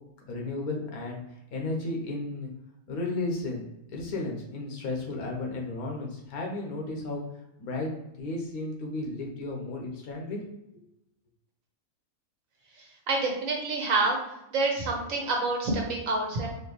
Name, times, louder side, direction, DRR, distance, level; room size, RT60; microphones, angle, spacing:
voice 1, 0.3-1.2 1.5-2.5 2.9-3.6 3.9-7.2 7.6-10.4, left 2 dB, 80° left, 0 dB, 1.4 m, -33 dB
voice 2, 12.8-14.2 14.5-16.5, right 3 dB, 65° right, 0 dB, 1.3 m, -27 dB
4.4 x 2.9 x 3.0 m, 0.87 s
omnidirectional pair, 1.6 m